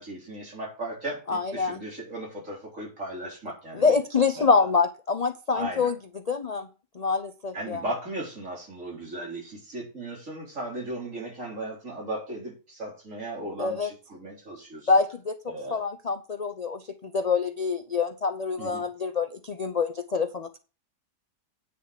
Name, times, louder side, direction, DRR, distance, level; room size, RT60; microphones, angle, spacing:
voice 1, 0.0-3.9 4.4-4.6 5.5-5.9 7.5-14.9 15.5-15.8 18.6-18.8, right 1 dB, 50° right, 4.4 m, -36 dB
voice 2, 1.3-1.8 3.7-6.0 6.3-6.7 6.9-7.8 13.6-13.9 14.9-15.3 15.7-20.6, left 4 dB, 50° left, 0.4 m, -26 dB
9.7 x 6.6 x 5.0 m
omnidirectional pair, 1.7 m